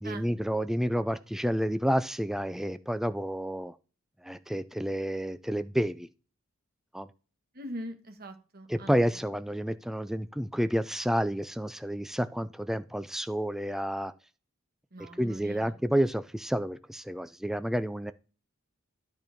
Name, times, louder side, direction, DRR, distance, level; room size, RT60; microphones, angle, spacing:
voice 1, 0.0-3.7 4.2-6.1 6.9-7.1 8.7-14.1 15.0-18.1, equal, ahead, 12 dB, 0.4 m, -30 dB
voice 2, 7.5-8.9 14.9-15.7, right 1 dB, 45° right, 7 dB, 1.5 m, -42 dB
10.5 x 4.5 x 5.2 m, 0.35 s
head